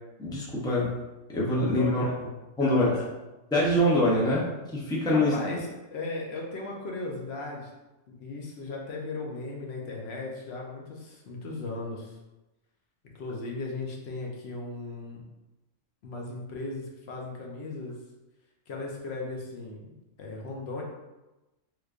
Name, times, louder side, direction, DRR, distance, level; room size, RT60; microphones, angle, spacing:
voice 1, 0.2-0.9 1.3-2.3 2.6-2.9 3.5-5.3, left 1 dB, 5° left, -6 dB, 0.4 m, -24 dB
voice 2, 1.6-2.1 2.6-3.1 5.1-7.7 8.1-12.2 13.1-15.2 16.0-18.0 18.7-19.9 20.2-20.8, left 3 dB, 60° left, -1 dB, 0.8 m, -37 dB
3.3 x 3.1 x 2.4 m, 1.0 s
omnidirectional pair, 1.3 m